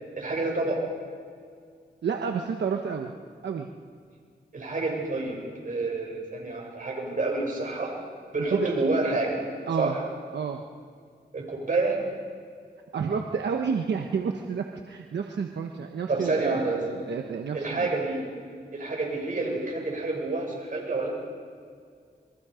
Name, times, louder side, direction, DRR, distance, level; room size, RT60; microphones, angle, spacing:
voice 1, 0.2-0.8 4.5-5.4 5.6-7.9 8.3-9.4 9.8-10.0 11.3-12.0 16.1-16.8 17.5-18.2 18.7-21.1, right 3 dB, 50° right, -1 dB, 7.0 m, -28 dB
voice 2, 2.0-3.1 3.4-3.7 8.5-8.7 9.7-10.0 10.3-10.6 12.9-17.9, right 6 dB, 85° right, 3 dB, 1.2 m, -30 dB
27.5 x 23.0 x 5.1 m, 2.1 s
wide cardioid pair, 90°, 18 cm